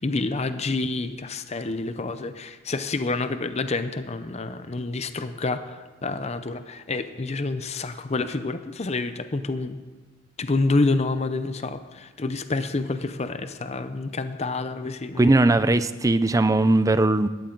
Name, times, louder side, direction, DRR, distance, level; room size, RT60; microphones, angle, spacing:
voice 1, 0.0-9.8 10.4-15.3, left 3 dB, 30° left, 10 dB, 0.6 m, -28 dB
voice 2, 15.2-17.3, right 2 dB, 15° right, 13 dB, 0.4 m, -19 dB
18.0 x 13.0 x 3.9 m, 1.2 s
head